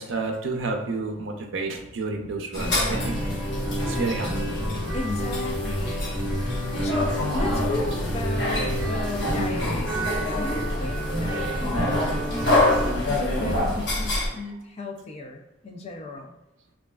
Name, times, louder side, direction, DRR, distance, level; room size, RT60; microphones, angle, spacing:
voice 1, 0.0-3.2 3.8-4.6 11.8-11.9, right 3 dB, 70° right, 2 dB, 0.5 m, -30 dB
sound 1, 2.5-14.3, left 1 dB, 60° left, 0.8 m, -27 dB
sound 2, 2.9-12.9, equal, ahead, 1.5 m, -30 dB
voice 2, 4.9-6.3 6.8-10.1 10.4-16.4, left 3 dB, 30° left, 3 dB, 0.3 m, -35 dB
3.1 x 2.4 x 2.2 m, 0.95 s
head